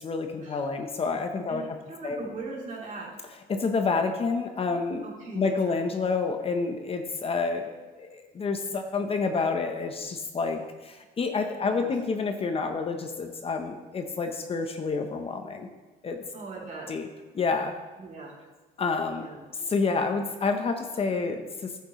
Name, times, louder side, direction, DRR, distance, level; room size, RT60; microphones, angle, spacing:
voice 1, 0.0-1.7 2.0-2.2 3.5-5.0 5.3-7.7 8.0-15.7 16.0-16.2 16.9-17.1 17.3-17.7 18.8-19.3 19.6-21.8, left 4 dB, 35° left, 5 dB, 0.9 m, -28 dB
voice 2, 1.5-3.1 5.0-5.8 11.5-11.9 16.3-16.9 18.0-18.3 19.1-19.4, right 3 dB, 45° right, -4 dB, 3.3 m, -40 dB
11.0 x 8.2 x 3.1 m, 1.2 s
cardioid pair, 110°, 17 cm